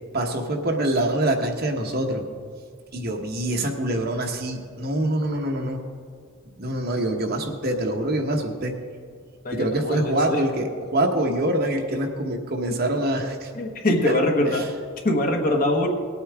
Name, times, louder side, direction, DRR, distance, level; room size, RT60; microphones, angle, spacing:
voice 1, 0.1-2.2 2.9-5.8 6.6-8.8 9.5-13.5 14.5-14.6, right 1 dB, 50° right, 2 dB, 1.2 m, -25 dB
voice 2, 9.4-10.4 13.5-14.7 15.0-15.9, left 1 dB, 45° left, 2 dB, 1.3 m, -23 dB
19.5 x 8.6 x 3.5 m, 2.1 s
head